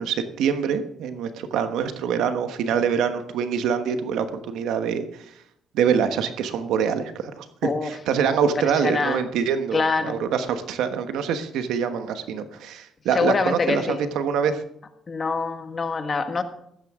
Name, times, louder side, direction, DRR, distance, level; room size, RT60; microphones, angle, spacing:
voice 1, 0.0-5.4 5.7-14.6, right 7 dB, 85° right, 9 dB, 1.2 m, -25 dB
voice 2, 8.4-9.2 9.7-10.2 13.1-14.0 15.1-16.4, left 4 dB, 35° left, 8 dB, 1.5 m, -25 dB
15.0 x 12.5 x 3.6 m, 0.75 s
cardioid pair, 90°, 0 cm